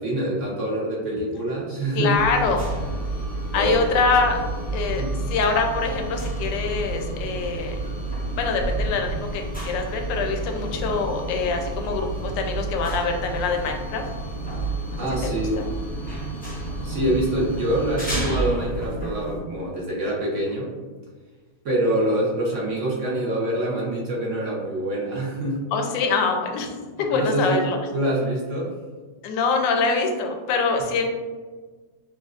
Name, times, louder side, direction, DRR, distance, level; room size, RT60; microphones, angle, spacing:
voice 1, 0.0-2.1 3.5-3.8 5.0-5.2 15.0-15.6 16.8-20.7 21.6-25.6 27.1-27.6 27.9-28.7, right 1 dB, 55° right, -4 dB, 0.9 m, -25 dB
voice 2, 1.9-2.7 3.5-4.4 4.7-7.8 8.4-14.0 14.9-15.7 25.7-27.8 29.2-31.1, left 4 dB, 80° left, 3 dB, 1.3 m, -24 dB
sound 1, 2.1-19.4, right 2 dB, 15° left, 0.3 m, -30 dB
6.3 x 2.6 x 2.4 m, 1.4 s
omnidirectional pair, 2.0 m